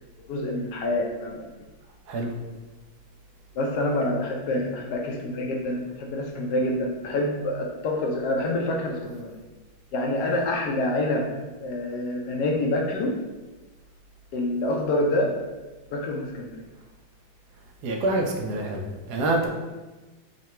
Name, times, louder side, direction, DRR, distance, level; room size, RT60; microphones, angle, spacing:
voice 1, 0.3-1.5 3.5-9.4 9.9-11.3 11.6-13.1 14.3-15.3 15.9-16.6, left 1 dB, 75° left, 0 dB, 0.9 m, -27 dB
voice 2, 17.8-19.5, right 2 dB, 75° right, 1 dB, 0.9 m, -26 dB
3.8 x 2.2 x 4.2 m, 1.2 s
omnidirectional pair, 2.2 m